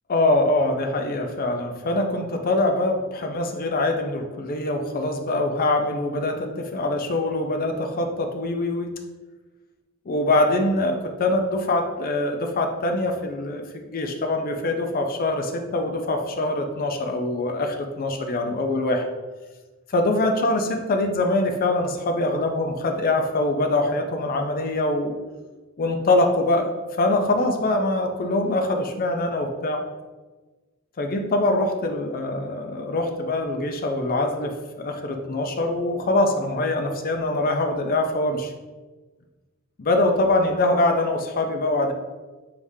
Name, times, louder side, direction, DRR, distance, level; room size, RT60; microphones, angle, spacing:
voice 1, 0.1-8.9 10.1-19.0 19.9-25.2 25.8-29.8 31.0-38.5 39.8-41.9, left 2 dB, 40° left, 4 dB, 0.5 m, -23 dB
4.9 x 3.5 x 2.7 m, 1.2 s
head